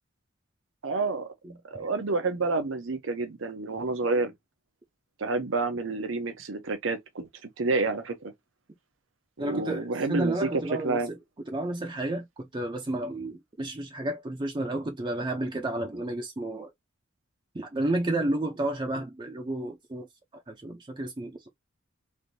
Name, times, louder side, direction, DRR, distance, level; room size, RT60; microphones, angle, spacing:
voice 1, 0.8-1.3 1.6-4.3 5.2-7.3 7.6-8.3 9.4-11.1, right 3 dB, 75° right, 0.7 m, -29 dB
voice 2, 9.4-11.2 11.5-16.7 17.5-20.1 20.3-21.5, right 1 dB, 25° right, 0.5 m, -31 dB
3.3 x 2.6 x 2.6 m
head